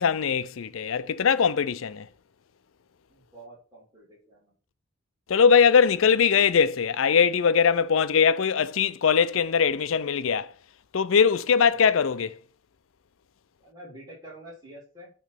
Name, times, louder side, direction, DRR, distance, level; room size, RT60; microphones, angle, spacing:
voice 1, 0.0-2.1 5.3-10.5 10.9-12.4, left 6 dB, 80° left, 0.5 m, -21 dB
voice 2, 3.1-4.6 11.6-11.9 13.6-15.1, right 1 dB, 20° right, 3.3 m, -47 dB
9.0 x 3.1 x 5.7 m
head